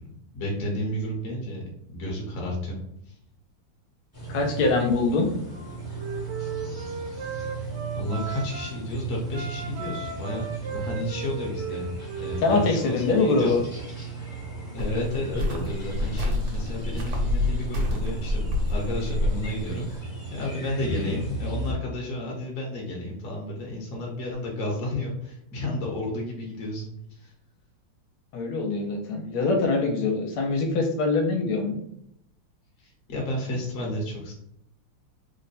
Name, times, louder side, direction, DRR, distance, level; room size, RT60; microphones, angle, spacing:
voice 1, 0.3-1.6 1.9-2.8 3.1-3.2 6.9-7.0 7.9-11.9 12.2-13.6 14.7-27.3 32.8-34.3, left 1 dB, 45° left, -2 dB, 1.1 m, -32 dB
sound 1, 4.1-21.7, right 3 dB, 30° left, 0.9 m, -36 dB
voice 2, 4.3-5.3 12.4-13.6 28.3-31.8, left 3 dB, 80° left, 2 dB, 1.5 m, -23 dB
Wind instrument woodwind instrument, 5.4-8.8 9.3-12.9, right 5 dB, 90° right, 1.5 m, -37 dB
Cricket, 14.8-20.0, left 2 dB, 60° right, 1.4 m, -28 dB
3.6 x 2.1 x 4.1 m, 0.75 s
omnidirectional pair, 2.4 m